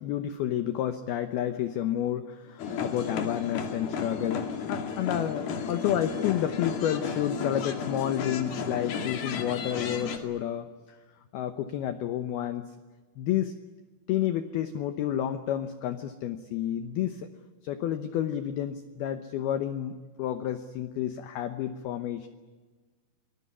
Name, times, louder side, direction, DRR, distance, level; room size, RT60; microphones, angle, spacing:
voice 1, 0.0-11.0 11.3-12.7 13.2-13.5 14.1-17.3 17.6-22.3, left 11 dB, 75° left, 9 dB, 2.4 m, -30 dB
sound 1, 2.6-10.2, left 6 dB, 60° left, 3.8 m, -33 dB
25.5 x 20.0 x 9.7 m, 1.4 s
omnidirectional pair, 5.5 m